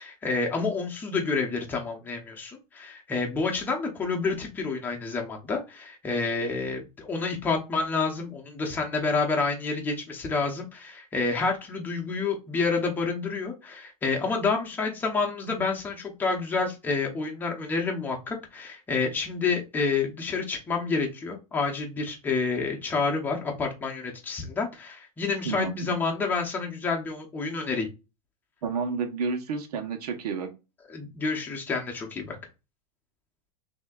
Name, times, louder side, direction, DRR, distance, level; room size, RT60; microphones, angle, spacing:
voice 1, 0.0-27.9 30.9-32.4, left 4 dB, 10° left, 0 dB, 0.8 m, -29 dB
voice 2, 25.4-26.0 28.6-30.5, right 5 dB, 90° right, 5 dB, 1.2 m, -30 dB
6.2 x 2.8 x 2.4 m, 0.27 s
supercardioid pair, 170°, 19 cm